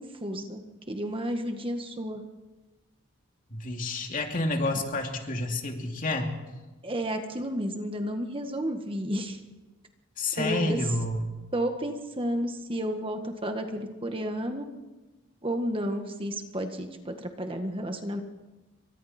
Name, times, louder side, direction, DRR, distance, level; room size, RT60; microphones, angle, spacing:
voice 1, 0.0-2.2 6.8-9.4 10.4-10.8 11.5-14.7 15.4-18.2, equal, 25° right, 5 dB, 1.6 m, -32 dB
voice 2, 3.5-6.3 10.2-11.3, left 2 dB, 40° left, 2 dB, 2.7 m, -29 dB
28.5 x 24.5 x 4.4 m, 1.2 s
head